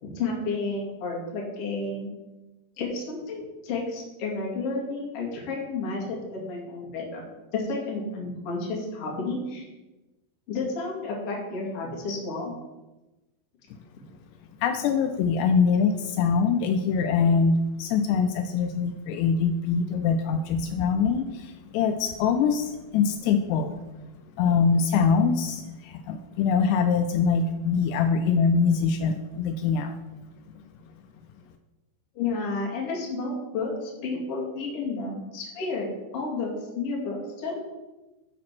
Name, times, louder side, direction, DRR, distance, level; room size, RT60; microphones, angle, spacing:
voice 1, 0.0-2.1 2.8-7.2 7.5-9.7 10.5-12.5 32.1-37.6, left 3 dB, 45° left, -2 dB, 2.4 m, -31 dB
voice 2, 14.6-23.8 24.4-30.0, left 5 dB, 85° left, 6 dB, 2.6 m, -23 dB
11.5 x 4.2 x 5.9 m, 1.1 s
omnidirectional pair, 4.9 m